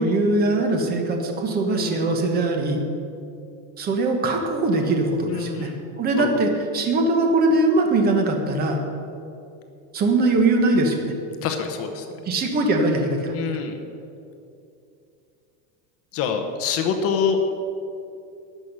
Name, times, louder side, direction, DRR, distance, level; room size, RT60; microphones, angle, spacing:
voice 1, 0.0-2.8 3.8-5.7 6.0-8.8 9.9-11.0 12.2-13.3, right 2 dB, 20° right, 3 dB, 1.2 m, -21 dB
voice 2, 5.3-5.8 6.2-6.3 11.4-12.1 13.3-13.8 16.1-17.4, left 6 dB, 35° left, 5 dB, 1.0 m, -25 dB
13.0 x 6.2 x 9.7 m, 2.6 s
cardioid pair, 175°, 42 cm